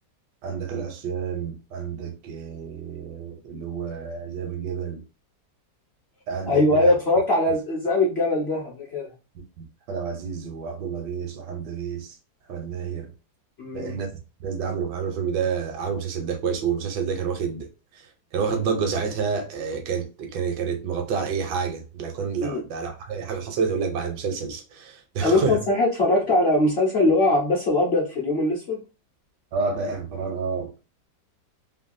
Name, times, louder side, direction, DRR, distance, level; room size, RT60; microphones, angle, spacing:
voice 1, 0.4-5.0 6.3-6.9 9.6-12.2 12.5-13.1 13.7-14.1 14.4-17.7 17.9-25.6 29.5-30.8, right 6 dB, 75° right, 1.2 m, -29 dB
voice 2, 6.5-9.1 13.6-14.0 22.4-22.6 25.2-28.8, left 2 dB, 55° left, 0.7 m, -21 dB
3.2 x 2.2 x 2.5 m
omnidirectional pair, 2.0 m